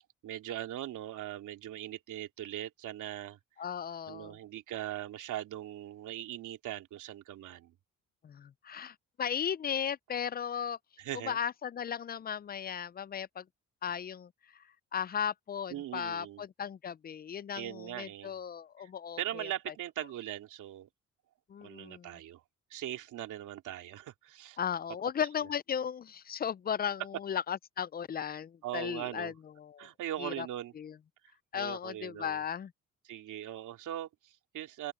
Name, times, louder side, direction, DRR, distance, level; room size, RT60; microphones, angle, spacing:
voice 1, 0.2-3.4 4.1-7.7 11.0-11.4 15.7-16.4 17.5-18.4 18.8-18.9 19.2-20.9 21.6-22.4 22.7-24.6 25.2-25.3 28.6-29.3 29.8-30.7 31.2-32.4 33.0-34.9, right 12 dB, 80° right, 2.9 m, -40 dB
voice 2, 3.6-4.3 8.2-10.8 11.3-13.4 13.8-14.3 14.9-19.5 21.5-22.1 24.6-29.3 29.6-29.9 30.2-30.5 30.8-30.9 31.5-32.7, left 8 dB, 30° left, 0.4 m, -36 dB
open air
cardioid pair, 90°, 30 cm